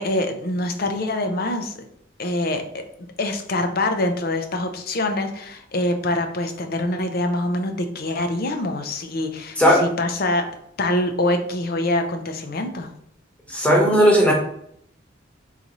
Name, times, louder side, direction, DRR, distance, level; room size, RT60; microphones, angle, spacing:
voice 1, 0.0-1.7 2.2-2.6 3.0-10.5 10.8-12.9, left 1 dB, 50° left, 6 dB, 0.6 m, -25 dB
voice 2, 13.5-14.3, equal, 5° left, -2 dB, 1.1 m, -16 dB
4.1 x 3.9 x 3.0 m, 0.70 s
head